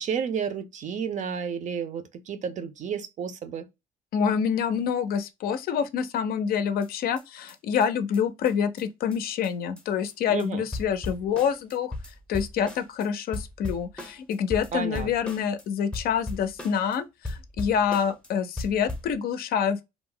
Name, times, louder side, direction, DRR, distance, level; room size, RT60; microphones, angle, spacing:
voice 1, 0.0-3.7 10.3-10.6 14.7-15.1, right 7 dB, 45° right, 0.5 m, -31 dB
voice 2, 4.1-11.9 12.3-19.9, left 7 dB, 65° left, 0.4 m, -27 dB
sound 1, 6.8-6.9 7.2-7.3 7.5-7.6 7.8-7.9 8.1-8.2 8.5-8.6 8.8-8.9 9.1-9.2 9.4-9.5 9.8-10.1 10.4-10.5 10.7-13.1 13.3-15.6 15.9-17.0 17.2-18.3 18.6-19.1, left 2 dB, 5° left, 0.6 m, -37 dB
2.3 x 2.0 x 3.7 m
cardioid pair, 110°, 17 cm